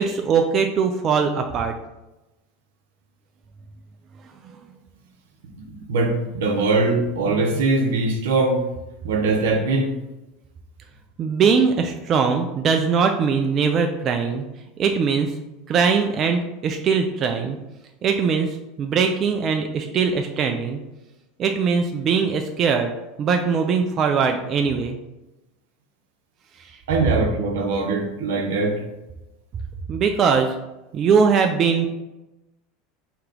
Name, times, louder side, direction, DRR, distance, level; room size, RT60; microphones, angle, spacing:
voice 1, 0.0-1.7 11.2-14.4 14.8-15.4 15.7-17.6 18.0-20.8 21.4-22.9 23.2-25.0 26.6-26.8 29.9-30.5 30.9-31.9, right 6 dB, 40° right, 4 dB, 0.4 m, -21 dB
voice 2, 5.6-8.6 9.0-10.0 26.9-28.8, right 3 dB, 85° right, 2 dB, 0.8 m, -21 dB
3.2 x 2.9 x 3.8 m, 0.98 s
supercardioid pair, 105°, 0 cm